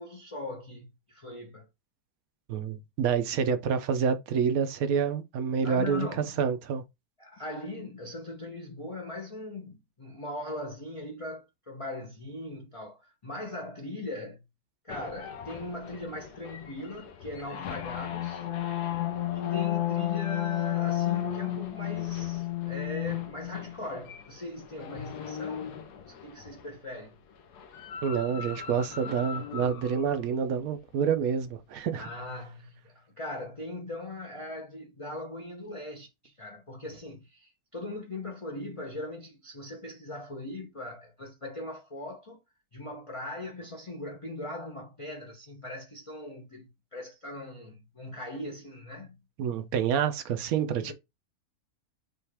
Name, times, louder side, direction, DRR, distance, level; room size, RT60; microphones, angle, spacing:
voice 1, 0.0-1.7 5.6-6.4 7.2-14.4 14.8-18.5 19.3-27.2 31.9-42.4 42.7-49.2 50.7-50.9, left 2 dB, 30° left, 0.6 m, -40 dB
voice 2, 2.5-6.1 6.4-6.8 28.0-32.1 49.4-50.9, right 7 dB, 70° right, 1.1 m, -28 dB
sound 1, 14.9-26.7 27.5-30.2, left 12 dB, 80° left, 1.3 m, -34 dB
5.6 x 2.5 x 3.4 m
omnidirectional pair, 1.7 m